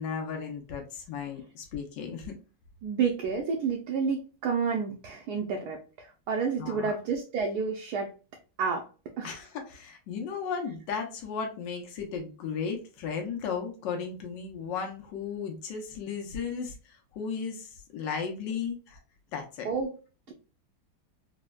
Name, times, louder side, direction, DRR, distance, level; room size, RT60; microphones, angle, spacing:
voice 1, 0.0-2.3 6.6-6.9 9.2-16.7 17.1-19.0 19.3-19.7, left 6 dB, 75° left, 2 dB, 1.3 m, -35 dB
voice 2, 2.8-8.1 8.6-8.9 9.2-9.4 19.6-19.9, right 5 dB, 75° right, 2 dB, 0.9 m, -30 dB
4.2 x 2.1 x 2.2 m, 0.34 s
omnidirectional pair, 2.0 m